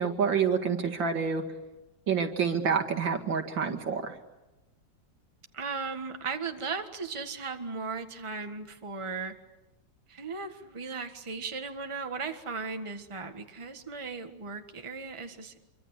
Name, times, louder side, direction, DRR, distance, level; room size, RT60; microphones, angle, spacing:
voice 1, 0.0-1.4 2.1-4.2, right 6 dB, 75° right, 5 dB, 2.7 m, -28 dB
voice 2, 5.5-9.3 10.1-15.6, right 4 dB, 15° right, 6 dB, 1.5 m, -37 dB
26.5 x 24.5 x 8.2 m, 1.0 s
omnidirectional pair, 2.1 m